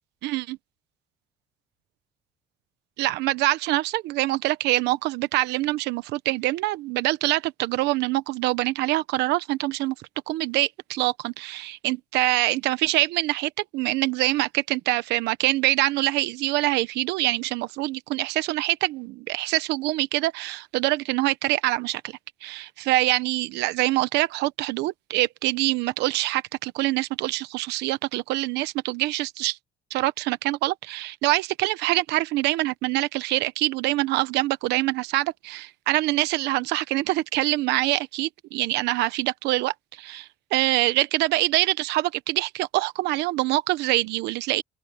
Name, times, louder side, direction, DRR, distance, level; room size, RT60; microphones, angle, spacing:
voice 1, 0.2-0.6 3.0-9.9 10.3-22.0 22.4-29.6 29.9-44.6, right 18 dB, 90° right, 1.0 m, -25 dB
open air
cardioid pair, 110°, 17 cm